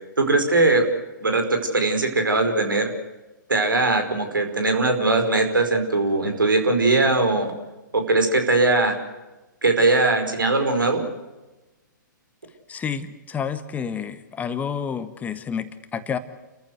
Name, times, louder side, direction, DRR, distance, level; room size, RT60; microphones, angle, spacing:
voice 1, 0.2-0.8 1.2-2.9 3.5-7.5 7.9-9.0 9.6-11.0, right 2 dB, 85° right, 6 dB, 5.0 m, -20 dB
voice 2, 12.7-16.2, left 7 dB, 15° left, 10 dB, 1.4 m, -29 dB
29.5 x 15.0 x 8.0 m, 1.1 s
figure-of-eight pair, 125°, 11 cm